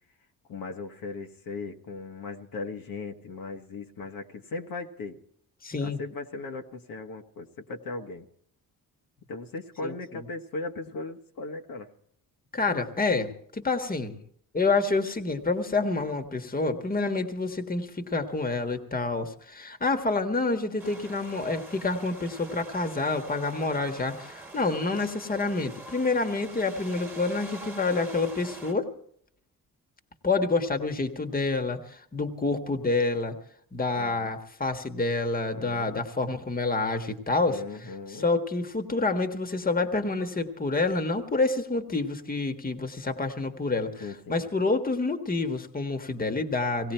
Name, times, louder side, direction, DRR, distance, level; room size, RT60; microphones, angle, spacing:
voice 1, 0.5-5.2 5.8-8.3 9.3-11.9 33.9-34.3 35.5-36.0 37.5-38.3 44.0-44.5, left 3 dB, 65° left, 4 dB, 1.6 m, -38 dB
voice 2, 5.6-6.0 9.8-10.2 12.5-14.2 14.5-28.9 30.2-33.3 33.7-37.6 38.1-46.9, left 3 dB, 25° left, 7 dB, 1.6 m, -28 dB
sound 1, 20.8-28.7, right 3 dB, 5° right, 1.8 m, -44 dB
18.0 x 17.5 x 4.5 m, 0.66 s
cardioid pair, 100°, 37 cm